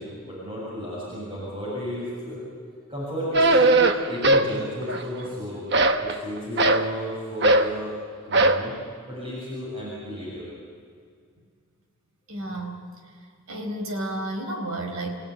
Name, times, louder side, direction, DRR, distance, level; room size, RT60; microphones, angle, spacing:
voice 1, 0.0-2.4 2.9-5.6 6.0-8.0 8.3-8.7 9.1-10.5, equal, 25° right, -7 dB, 7.4 m, -32 dB
sound 1, 3.3-4.5 4.8-5.3 5.7-6.9 7.4-7.7 8.3-8.7, right 2 dB, 50° right, 1.2 m, -19 dB
voice 2, 12.3-12.9 13.5-15.2, right 1 dB, 85° right, 3 dB, 4.4 m, -31 dB
29.5 x 17.5 x 9.5 m, 2.1 s
head